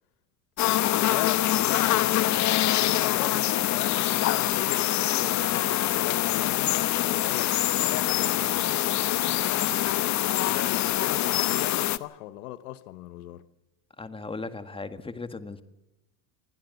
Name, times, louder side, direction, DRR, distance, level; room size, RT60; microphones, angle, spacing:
sound 1, 0.6-12.0, left 14 dB, 40° left, 1.0 m, -25 dB
voice 1, 0.8-8.7 9.5-13.4, left 15 dB, 85° left, 1.2 m, -39 dB
voice 2, 14.0-15.6, left 3 dB, 10° left, 1.8 m, -37 dB
23.5 x 16.0 x 8.1 m
supercardioid pair, 110°, 43 cm